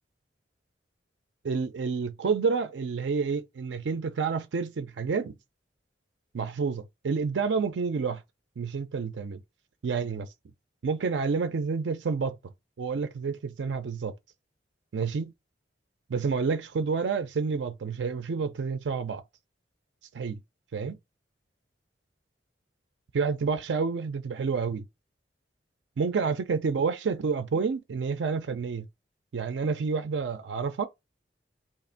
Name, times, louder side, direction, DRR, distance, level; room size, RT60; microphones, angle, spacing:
voice 1, 1.4-5.3 6.3-8.2 8.6-9.4 9.8-10.3 10.8-12.4 12.8-14.1 14.9-15.3 16.1-19.2 20.1-20.4 20.7-21.0 23.1-24.8 26.0-28.9 29.3-30.9, right 5 dB, 80° right, 0.4 m, -29 dB
2.9 x 2.5 x 4.2 m
head